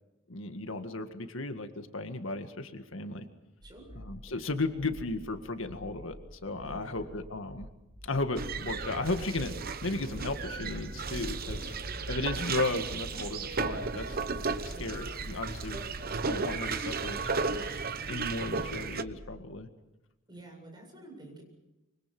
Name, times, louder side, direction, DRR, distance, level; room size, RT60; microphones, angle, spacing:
voice 1, 0.3-3.3 4.0-7.7 8.0-9.5 9.8-11.7 12.1-15.8 16.3-17.8 18.1-19.7, left 2 dB, 75° left, 7 dB, 2.0 m, -35 dB
voice 2, 3.6-4.5 6.6-7.2 11.4-11.9 14.7-15.0 15.4-15.9 20.3-21.4, right 2 dB, 20° right, 1 dB, 7.8 m, -50 dB
sound 1, 3.6-19.4, right 1 dB, 65° right, 2.7 m, -50 dB
sound 2, 8.4-19.0, right 4 dB, 45° right, 1.0 m, -34 dB
26.5 x 25.0 x 6.2 m, 1.0 s
head